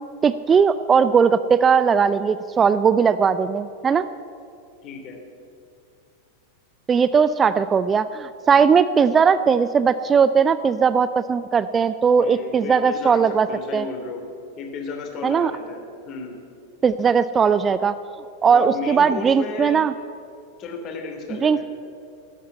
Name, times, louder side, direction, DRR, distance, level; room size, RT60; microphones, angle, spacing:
voice 1, 0.2-4.1 6.9-13.5 13.7-13.9 15.2-15.5 16.8-18.0 18.4-19.9 21.4-21.6, right 6 dB, 20° right, 13 dB, 0.4 m, -18 dB
voice 2, 4.8-5.2 12.2-14.3 14.6-16.4 18.5-19.8 20.6-21.6, left 4 dB, 35° left, 3 dB, 2.9 m, -33 dB
12.5 x 9.5 x 9.8 m, 2.4 s
figure-of-eight pair, 90°, 0 cm